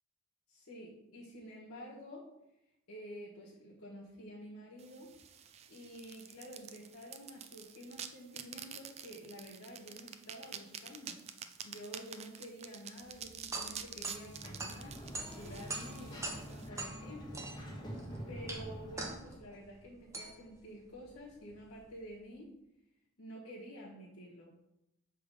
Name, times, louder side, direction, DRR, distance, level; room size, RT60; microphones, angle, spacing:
voice 1, 0.5-2.3 2.9-5.1 5.7-11.2 11.6-15.0 15.4-17.4 18.3-22.5 23.2-24.5, equal, 80° left, -6 dB, 1.5 m, -49 dB
sound 1, 4.8-16.7, right 8 dB, 30° right, 0.3 m, -48 dB
sound 2, 13.0-22.2, right 2 dB, 15° right, 0.7 m, -45 dB
Sliding door, 14.0-19.4, equal, 20° left, 1.1 m, -46 dB
7.0 x 3.3 x 4.9 m, 0.85 s
head